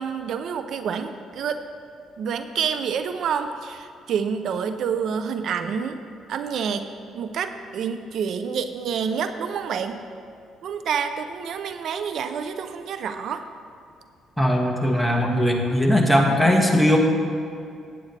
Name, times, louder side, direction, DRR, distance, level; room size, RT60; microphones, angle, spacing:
voice 1, 0.0-1.6 2.2-6.0 6.3-6.9 7.1-10.0 10.6-13.4, right 7 dB, 65° right, 9 dB, 0.5 m, -28 dB
voice 2, 14.4-17.0, equal, ahead, 0 dB, 1.5 m, -19 dB
16.0 x 8.5 x 3.3 m, 2.4 s
cardioid pair, 105°, 0 cm